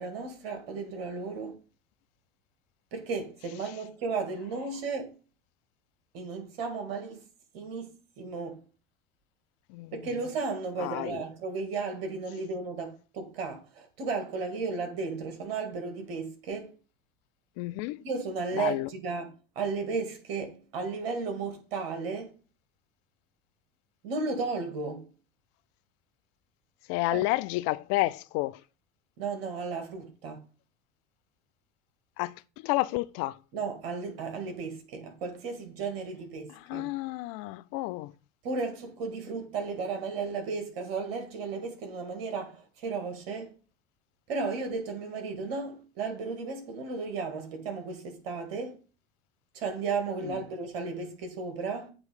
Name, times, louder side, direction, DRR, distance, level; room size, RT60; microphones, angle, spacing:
voice 1, 0.0-1.6 2.9-5.1 6.1-7.2 7.5-8.6 9.9-16.7 18.0-22.3 24.0-25.1 27.1-27.2 29.2-30.4 33.5-36.9 38.4-43.5 44.3-48.8 49.5-51.9, right 4 dB, 70° right, 2.1 m, -34 dB
voice 2, 10.8-11.2 17.6-18.0 18.5-18.9 26.9-28.6 32.2-33.4 36.7-38.1 50.2-50.4, left 19 dB, 55° left, 0.5 m, -30 dB
8.5 x 3.0 x 4.9 m
hypercardioid pair, 80°, 30 cm